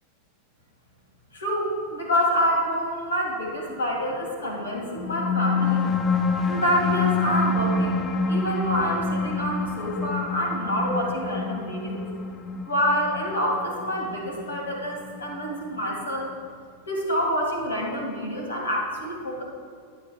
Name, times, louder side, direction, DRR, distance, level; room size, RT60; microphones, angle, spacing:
voice 1, 1.3-5.8 6.5-8.0 8.3-12.0 12.6-16.3 16.9-19.4, equal, 75° left, -1 dB, 2.3 m, -27 dB
sound 1, 4.8-15.8, left 4 dB, 25° left, 0.6 m, -27 dB
15.0 x 9.8 x 2.4 m, 2.1 s
figure-of-eight pair, 90°, 0 cm